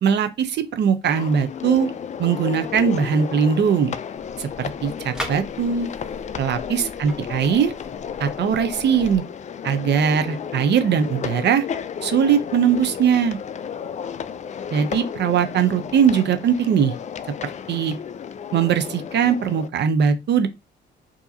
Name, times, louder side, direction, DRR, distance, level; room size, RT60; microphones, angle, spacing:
voice 1, 0.0-1.9 2.2-3.9 4.4-5.9 6.4-7.7 8.2-9.2 9.6-11.6 12.0-13.4 14.7-16.9 17.7-18.0 18.5-20.5, right 7 dB, 60° right, 0.6 m, -20 dB
sound 1, 1.0-19.7, left 8 dB, 35° left, 0.4 m, -33 dB
sound 2, 4.1-9.2, equal, 5° right, 1.1 m, -39 dB
4.7 x 2.7 x 2.7 m
cardioid pair, 90°, 20 cm